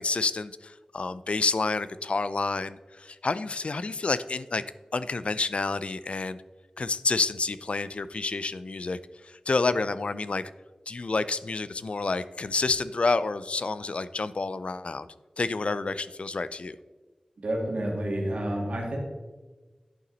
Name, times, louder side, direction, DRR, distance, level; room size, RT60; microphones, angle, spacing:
voice 1, 0.0-4.6 4.9-6.4 6.8-9.0 9.2-10.4 10.9-15.1 15.4-16.8, left 3 dB, 60° left, 15 dB, 0.4 m, -29 dB
voice 2, 17.4-19.0, right 1 dB, 85° right, -1 dB, 2.1 m, -29 dB
10.5 x 5.6 x 4.0 m, 1.3 s
wide cardioid pair, 75°, 2 cm